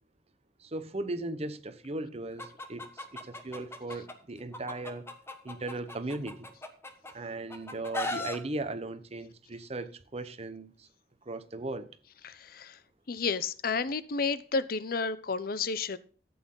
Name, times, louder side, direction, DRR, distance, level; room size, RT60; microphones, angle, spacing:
voice 1, 0.6-5.1 5.4-6.5 7.1-10.9 11.2-11.9, right 2 dB, 35° right, 1.1 m, -37 dB
Chicken rooster, 2.4-4.1 4.5-7.1 7.5-8.4, left 2 dB, 15° left, 1.4 m, -37 dB
voice 2, 12.2-12.8 13.1-16.0, left 4 dB, 55° left, 0.6 m, -31 dB
13.5 x 8.6 x 3.9 m
head